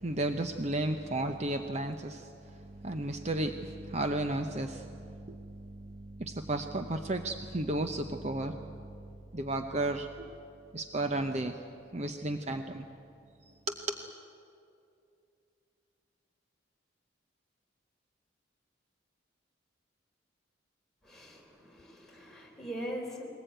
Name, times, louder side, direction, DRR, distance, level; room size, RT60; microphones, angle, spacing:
voice 1, 0.0-9.1 9.3-10.4 10.7-11.5 11.9-12.8 13.7-14.0, right 1 dB, 35° right, 6 dB, 0.8 m, -34 dB
voice 2, 21.0-23.3, equal, ahead, -3 dB, 3.9 m, -41 dB
22.0 x 19.5 x 9.1 m, 2.6 s
head